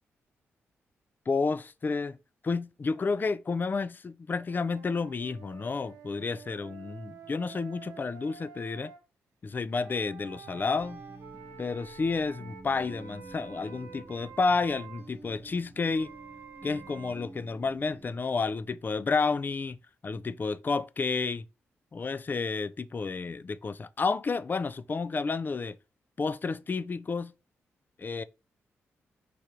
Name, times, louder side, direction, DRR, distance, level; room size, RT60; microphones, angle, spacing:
voice 1, 1.3-2.2 2.4-8.9 9.4-11.0 11.6-16.1 16.6-19.8 20.0-21.5 21.9-25.8 26.2-27.3 28.0-28.2, left 4 dB, 35° left, 0.3 m, -30 dB
sound 1, 4.5-9.0 9.7-15.1 15.9-17.1, right 6 dB, 80° right, 0.6 m, -49 dB
sound 2, 10.3-19.0, right 2 dB, 40° right, 0.9 m, -50 dB
3.3 x 2.5 x 4.3 m
supercardioid pair, 45°, 6 cm